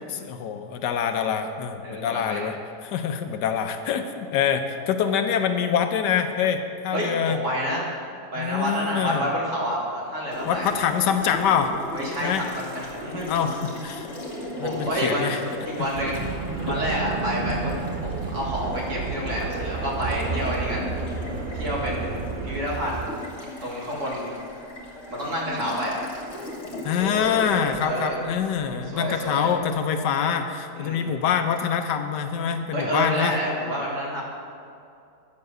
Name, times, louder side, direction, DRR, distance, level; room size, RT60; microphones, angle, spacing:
voice 1, 0.1-2.6 2.8-7.4 8.3-9.3 10.4-11.7 12.2-12.4 13.3-14.1 14.6-15.4 16.7-16.8 26.8-33.4, left 7 dB, 85° left, 7 dB, 1.3 m, -25 dB
voice 2, 1.8-2.5 6.9-7.9 8.3-10.7 11.9-13.3 14.6-15.3 15.7-16.2 16.7-17.7 18.0-20.9 21.5-22.2 22.4-23.1 23.6-24.3 25.1-26.0 27.8-28.2 28.9-29.5 30.8-31.1 32.7-34.2, equal, 45° right, -4 dB, 2.2 m, -28 dB
Water tap faucet, 10.3-29.5, left 1 dB, 40° left, 1.9 m, -37 dB
sound 1, 15.9-23.1, right 4 dB, 90° right, 0.4 m, -31 dB
9.4 x 7.1 x 6.6 m, 2.5 s
omnidirectional pair, 1.8 m